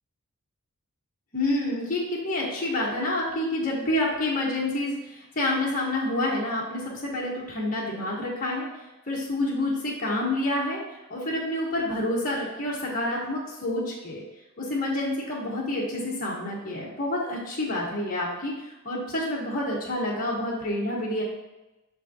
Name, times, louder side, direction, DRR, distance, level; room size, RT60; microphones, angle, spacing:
voice 1, 1.3-8.7 9.1-10.8 11.1-14.2 14.6-18.5 18.8-21.2, left 1 dB, 40° left, -5 dB, 1.3 m, -28 dB
6.3 x 5.2 x 2.9 m, 1.0 s
head